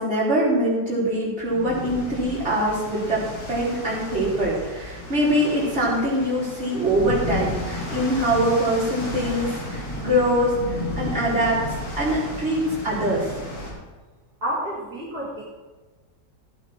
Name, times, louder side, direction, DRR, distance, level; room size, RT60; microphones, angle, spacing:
voice 1, 0.0-10.6 11.0-11.6 12.0-13.3, equal, 40° right, -7 dB, 4.1 m, -23 dB
sound 1, 1.4-13.7, left 1 dB, 60° left, 3.5 m, -33 dB
voice 2, 14.4-15.4, right 1 dB, 65° right, -7 dB, 2.9 m, -29 dB
15.0 x 9.1 x 4.3 m, 1.3 s
omnidirectional pair, 1.8 m